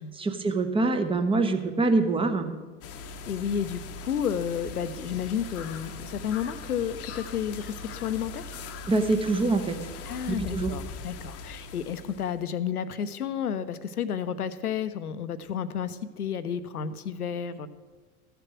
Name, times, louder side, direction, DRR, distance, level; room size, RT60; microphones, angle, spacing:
voice 1, 0.2-2.6 8.9-9.7 10.3-10.7, right 3 dB, 10° right, 7 dB, 0.8 m, -25 dB
sound 1, 2.8-12.4, left 3 dB, 30° left, 0.9 m, -40 dB
voice 2, 3.0-8.6 10.1-17.7, left 8 dB, 85° left, 13 dB, 0.7 m, -31 dB
13.5 x 6.9 x 6.0 m, 1.4 s
figure-of-eight pair, 85°, 44 cm